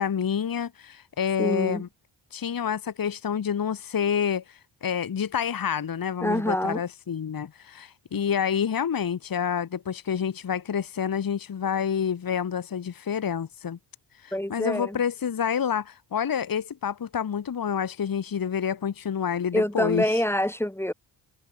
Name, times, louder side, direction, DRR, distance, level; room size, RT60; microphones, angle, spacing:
voice 1, 0.0-1.9 2.3-13.8 14.2-20.2, left 8 dB, 45° left, 1.5 m, -28 dB
voice 2, 1.4-1.8 6.2-6.8 14.3-15.0 19.5-20.9, left 1 dB, 5° left, 2.0 m, -26 dB
cardioid pair, 65°, 48 cm